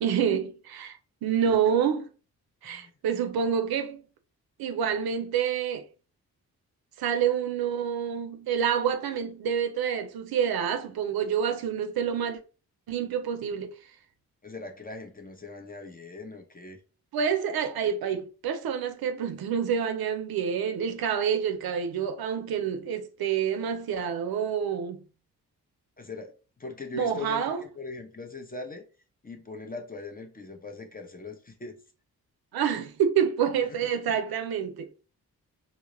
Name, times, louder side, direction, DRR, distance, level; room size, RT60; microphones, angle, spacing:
voice 1, 0.0-2.0 2.6-4.0 4.6-5.8 7.0-12.4 12.9-13.7 17.1-25.0 26.9-27.6 32.5-34.9, right 8 dB, 65° right, 0.6 m, -28 dB
voice 2, 14.4-16.8 17.8-17.9 26.0-28.8 29.2-31.8 33.6-33.9, left 3 dB, 20° left, 0.7 m, -41 dB
2.2 x 2.0 x 3.0 m
supercardioid pair, 40°, 40 cm